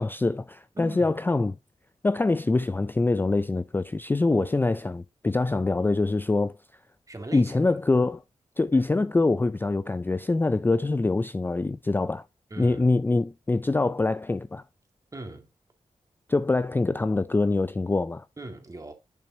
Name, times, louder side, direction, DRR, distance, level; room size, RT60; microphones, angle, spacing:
voice 1, 0.0-1.5 2.0-6.6 7.3-8.2 8.6-12.2 12.6-14.6 16.3-18.2, left 3 dB, 15° left, 0.3 m, -24 dB
voice 2, 0.8-1.1 4.3-4.6 7.1-7.8 12.5-12.8 15.1-15.5 18.4-18.9, right 2 dB, 25° right, 2.0 m, -39 dB
6.8 x 6.1 x 2.7 m
cardioid pair, 65°, 13 cm